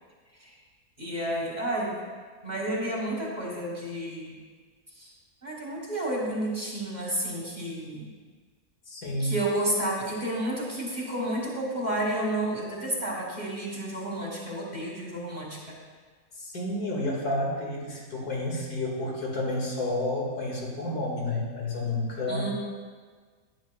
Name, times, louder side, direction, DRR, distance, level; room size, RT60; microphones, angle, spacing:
voice 1, 1.0-1.9 2.4-4.4 5.0-5.1 5.4-8.1 9.2-15.8 22.3-22.5, right 1 dB, 30° right, -3 dB, 1.5 m, -31 dB
voice 2, 8.9-9.4 16.4-22.5, left 1 dB, 85° left, -3 dB, 2.3 m, -30 dB
10.5 x 9.8 x 2.3 m, 1.5 s
omnidirectional pair, 1.6 m